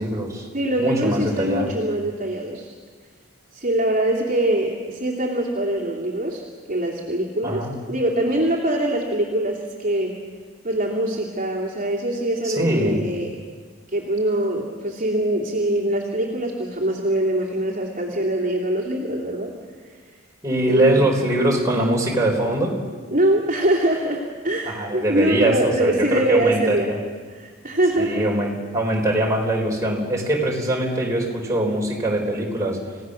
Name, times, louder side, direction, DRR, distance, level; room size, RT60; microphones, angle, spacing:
voice 1, 0.0-0.5 0.8-1.7 7.4-7.7 12.4-13.0 20.4-22.8 24.7-27.0 28.0-32.8, right 1 dB, 15° right, -2 dB, 3.9 m, -22 dB
voice 2, 0.5-2.7 3.5-6.4 6.7-10.2 10.6-13.3 13.9-19.5 20.7-21.1 23.1-26.9 27.3-28.3, right 1 dB, 40° right, -3 dB, 2.8 m, -23 dB
29.0 x 17.0 x 6.5 m, 1.6 s
head